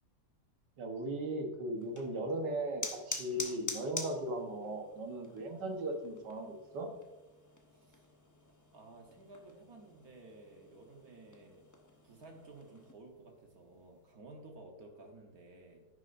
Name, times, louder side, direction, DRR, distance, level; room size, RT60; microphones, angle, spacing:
voice 1, 0.8-6.9, right 1 dB, 80° right, 3 dB, 1.8 m, -37 dB
sound 1, 1.8-12.9, left 2 dB, 15° left, 0.6 m, -47 dB
voice 2, 7.7-8.1 8.7-11.7 12.0-15.9, right 2 dB, 60° right, 2 dB, 1.5 m, -54 dB
10.5 x 9.8 x 2.6 m, 1.1 s
omnidirectional pair, 1.8 m